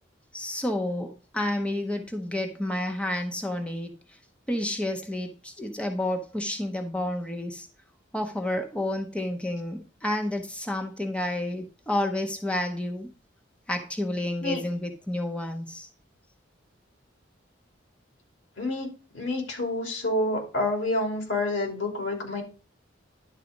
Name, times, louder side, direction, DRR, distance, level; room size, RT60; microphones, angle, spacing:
voice 1, 0.3-3.9 4.5-7.7 8.1-13.1 13.7-15.9, left 1 dB, 5° left, 0.8 m, -30 dB
voice 2, 18.6-18.9 19.1-22.4, left 2 dB, 85° left, 2.9 m, -28 dB
10.5 x 4.1 x 5.1 m
head